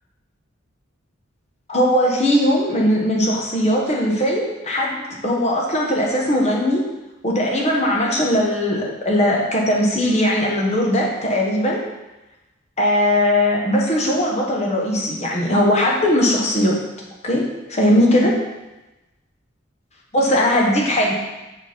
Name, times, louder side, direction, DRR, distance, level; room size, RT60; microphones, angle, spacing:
voice 1, 1.7-6.8 7.2-11.8 12.8-16.8 17.2-18.4 20.1-21.1, left 1 dB, 35° left, -2 dB, 1.1 m, -19 dB
6.0 x 4.3 x 5.1 m, 1.0 s
head